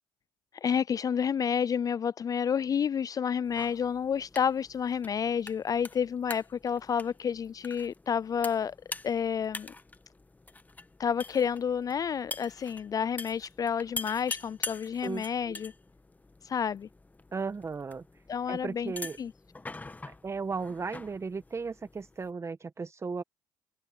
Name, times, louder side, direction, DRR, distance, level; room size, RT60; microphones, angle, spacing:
voice 1, 0.6-8.7 9.0-9.7 11.0-15.7 16.4-16.9 18.3-18.9 19.2-19.3, left 7 dB, 40° left, 0.5 m, -30 dB
sound 1, 3.4-22.3, left 3 dB, 15° left, 1.3 m, -45 dB
voice 2, 15.0-15.5 17.3-18.0 18.5-19.2 20.2-23.2, right 4 dB, 30° right, 1.7 m, -35 dB
open air
hypercardioid pair, 65°, 10 cm